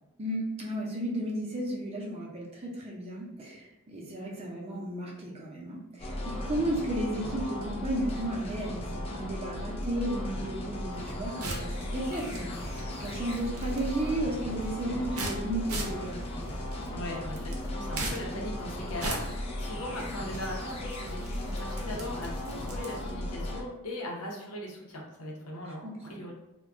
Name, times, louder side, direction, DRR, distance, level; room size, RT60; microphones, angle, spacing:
voice 1, 0.2-16.2 25.8-26.2, right 1 dB, 30° right, -3 dB, 0.6 m, -34 dB
sound 1, 6.0-23.6, left 1 dB, 25° left, 0.3 m, -36 dB
sound 2, 10.9-19.4, equal, 55° left, 0.9 m, -49 dB
sound 3, 11.0-23.2, right 2 dB, 75° right, 0.6 m, -41 dB
voice 2, 16.8-26.3, left 1 dB, 85° left, -1 dB, 0.7 m, -39 dB
2.3 x 2.2 x 3.5 m, 0.91 s
head